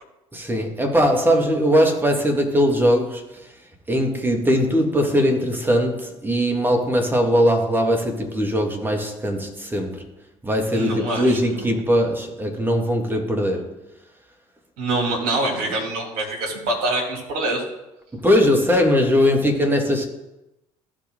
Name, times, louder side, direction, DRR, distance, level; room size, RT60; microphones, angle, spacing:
voice 1, 0.3-3.5 3.9-10.0 10.4-13.7 18.1-20.1, equal, 10° right, 2 dB, 2.3 m, -20 dB
voice 2, 10.7-11.6 14.8-17.6, right 2 dB, 65° right, 0 dB, 2.9 m, -25 dB
14.5 x 5.0 x 3.8 m, 0.94 s
figure-of-eight pair, 55°, 18 cm